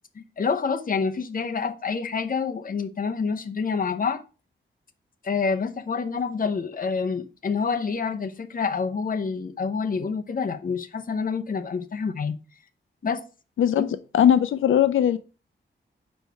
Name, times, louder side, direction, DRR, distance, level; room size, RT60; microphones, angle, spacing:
voice 1, 0.2-4.2 5.2-12.4 13.0-13.2 13.8-13.9, left 5 dB, 45° left, 7 dB, 0.7 m, -27 dB
voice 2, 14.1-15.2, left 9 dB, 85° left, 13 dB, 0.4 m, -19 dB
4.7 x 4.4 x 5.5 m, 0.33 s
wide cardioid pair, 160°, 20 cm